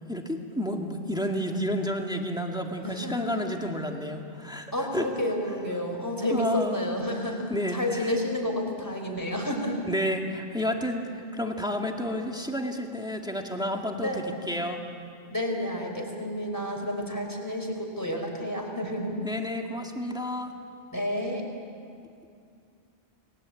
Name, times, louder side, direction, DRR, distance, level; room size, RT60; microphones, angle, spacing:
voice 1, 0.1-5.1 6.3-6.9 7.5-8.2 9.9-14.8 19.2-20.5, equal, 5° right, 2 dB, 2.0 m, -30 dB
voice 2, 2.8-3.3 4.7-9.8 14.0-14.2 15.3-19.2 20.9-21.4, left 1 dB, 15° left, 2 dB, 4.0 m, -30 dB
29.5 x 20.5 x 8.5 m, 2.4 s
omnidirectional pair, 1.1 m